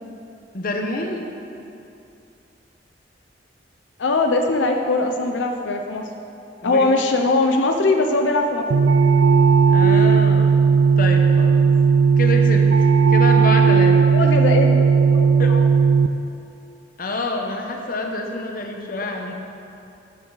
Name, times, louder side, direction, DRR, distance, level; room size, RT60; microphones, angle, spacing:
voice 1, 0.5-1.3 6.6-6.8 9.7-10.6 11.0-11.7 12.2-14.3 15.4-15.6 17.0-19.3, left 2 dB, 50° left, 3 dB, 0.9 m, -27 dB
voice 2, 4.0-6.0 6.6-8.6 14.1-15.6 18.9-19.0, left 2 dB, 90° left, 3 dB, 0.7 m, -21 dB
sound 1, 8.7-16.1, right 5 dB, 85° right, 0.4 m, -15 dB
15.5 x 6.4 x 4.0 m, 2.7 s
head